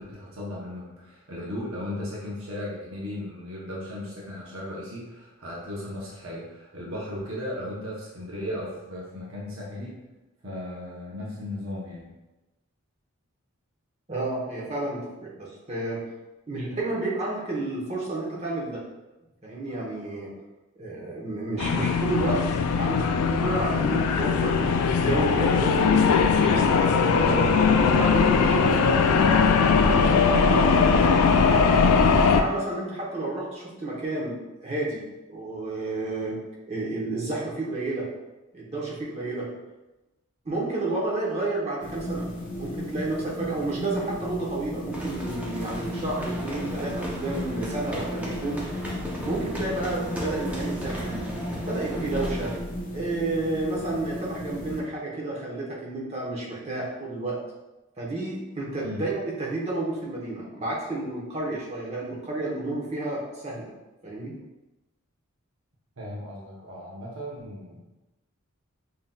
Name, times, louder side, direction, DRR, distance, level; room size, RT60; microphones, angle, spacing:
voice 1, 0.0-10.0 10.4-12.1 58.8-59.0 66.0-67.8, left 1 dB, 60° right, -5 dB, 0.8 m, -36 dB
voice 2, 14.1-16.0 16.5-18.8 19.4-20.3 20.8-22.4 22.7-26.2 26.8-29.4 29.8-31.9 32.3-35.0 35.3-36.4 36.7-38.1 38.5-39.5 40.4-42.3 42.5-48.8 49.2-51.2 51.6-52.5 52.9-57.4 58.0-63.7 64.0-64.3, right 2 dB, 30° right, -4 dB, 0.9 m, -31 dB
sound 1, 21.6-32.4, left 5 dB, 85° left, 0.3 m, -20 dB
sound 2, 41.8-54.8, equal, 35° left, 0.8 m, -35 dB
sound 3, 44.9-52.6, equal, 5° right, 0.6 m, -36 dB
5.6 x 2.8 x 2.2 m, 1.0 s
head